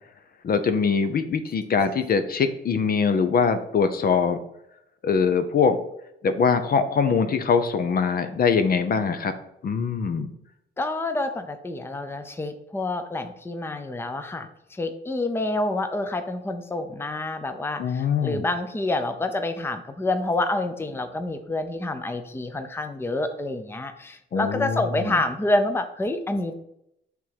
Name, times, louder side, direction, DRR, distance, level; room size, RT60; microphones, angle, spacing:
voice 1, 0.4-4.4 5.0-5.8 6.2-9.3 9.6-10.3 17.8-18.4 24.3-25.2, left 5 dB, 50° left, 9 dB, 0.7 m, -23 dB
voice 2, 10.8-26.5, left 2 dB, 10° left, 8 dB, 0.6 m, -28 dB
5.8 x 3.7 x 6.0 m, 0.79 s
cardioid pair, 90°, 20 cm